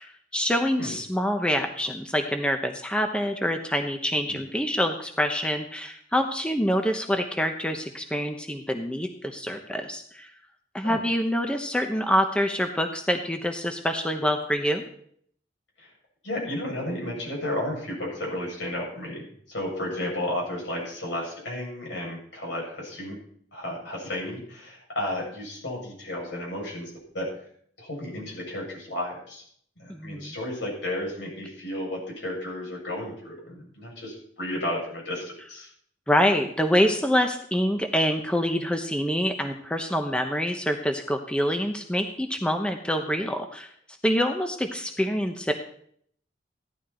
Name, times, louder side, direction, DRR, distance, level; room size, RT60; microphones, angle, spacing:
voice 1, 0.0-10.3 10.7-14.8 29.9-30.3 36.1-43.7 44.0-45.5, equal, 5° left, 5 dB, 1.0 m, -26 dB
voice 2, 16.2-23.2 23.5-27.3 27.8-29.4 29.8-35.7, left 1 dB, 70° left, -2 dB, 7.8 m, -33 dB
16.0 x 12.0 x 4.4 m, 0.63 s
head